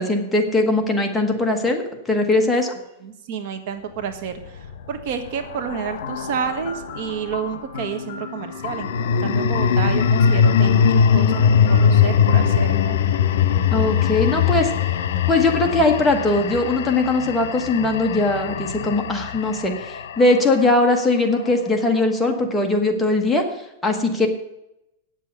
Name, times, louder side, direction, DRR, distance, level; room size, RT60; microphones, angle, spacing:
voice 1, 0.0-2.7 13.7-14.7 15.3-23.4 23.8-24.3, left 2 dB, 5° left, 2 dB, 1.2 m, -20 dB
voice 2, 3.0-13.0, right 7 dB, 50° right, 8 dB, 1.4 m, -30 dB
horror ghost, 4.4-6.9 8.5-20.8, left 7 dB, 75° left, 1.1 m, -21 dB
sound 1, 6.0-13.9, left 6 dB, 60° left, 1.8 m, -35 dB
9.2 x 7.5 x 8.1 m, 0.88 s
supercardioid pair, 165°, 0 cm